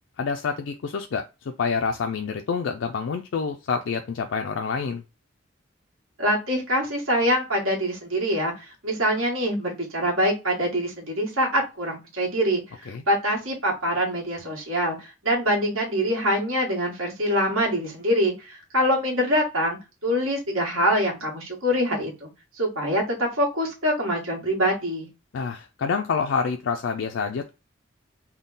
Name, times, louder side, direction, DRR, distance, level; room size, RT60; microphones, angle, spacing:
voice 1, 0.2-5.0 12.9-13.0 25.3-27.5, left 5 dB, 65° left, 0.4 m, -27 dB
voice 2, 6.2-22.3 22.6-25.1, equal, 80° right, 1.6 m, -24 dB
3.7 x 2.2 x 3.9 m
head